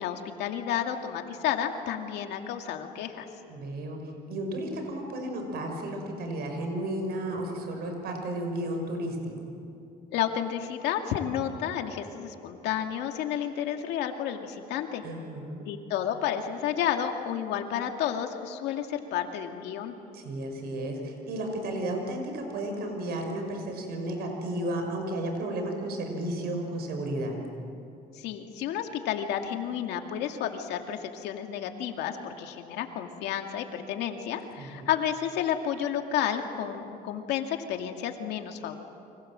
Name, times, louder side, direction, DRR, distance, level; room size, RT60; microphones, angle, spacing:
voice 1, 0.0-3.3 10.1-15.0 15.7-19.9 28.1-38.8, left 9 dB, 85° left, 4 dB, 2.3 m, -31 dB
voice 2, 3.5-4.0 4.3-9.2 9.4-9.5 15.0-15.7 20.1-27.4 34.6-34.9, right 1 dB, 70° right, 4 dB, 6.2 m, -33 dB
30.0 x 25.0 x 7.6 m, 2.7 s
cardioid pair, 110°, 17 cm